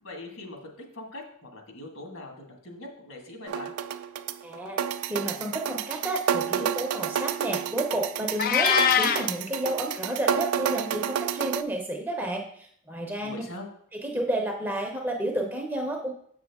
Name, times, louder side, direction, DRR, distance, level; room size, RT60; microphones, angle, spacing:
voice 1, 0.0-3.7 13.2-13.7, left 2 dB, 65° left, 2 dB, 1.7 m, -42 dB
sound 1, 3.5-11.6, right 8 dB, 85° right, 0.4 m, -30 dB
voice 2, 4.4-4.8 5.0-13.4 14.0-16.1, right 1 dB, 10° right, 1 dB, 0.7 m, -31 dB
Meow, 8.4-9.3, left 7 dB, 40° left, 0.4 m, -22 dB
7.4 x 6.2 x 3.5 m, 0.63 s
head